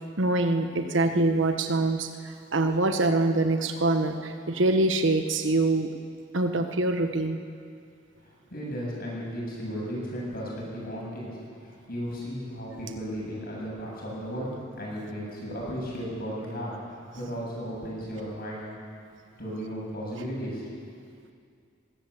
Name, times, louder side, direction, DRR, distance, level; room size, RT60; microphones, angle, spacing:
voice 1, 0.2-5.9 6.3-7.4, right 2 dB, 80° right, 6 dB, 1.3 m, -24 dB
voice 2, 8.2-18.8 19.4-20.7, equal, 55° left, -4 dB, 7.9 m, -35 dB
21.5 x 16.0 x 8.3 m, 2.3 s
head